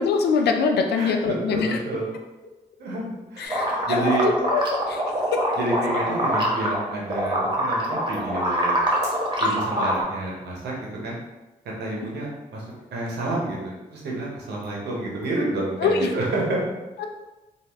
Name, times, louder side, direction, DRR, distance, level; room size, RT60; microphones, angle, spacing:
voice 1, 0.0-1.8 3.4-5.0 5.3-5.4 6.1-6.2 15.8-16.1 17.0-17.1, left 5 dB, 75° left, 4 dB, 0.5 m, -24 dB
voice 2, 1.0-2.1 2.8-4.3 5.6-8.8 9.4-10.7 11.0-11.2 11.8-12.6 12.9-16.6, right 2 dB, 85° right, -3 dB, 0.9 m, -29 dB
sound 1, 3.5-6.8 7.1-10.0, equal, 30° right, 1.0 m, -24 dB
3.3 x 2.6 x 3.0 m, 1.1 s
supercardioid pair, 45°, 17 cm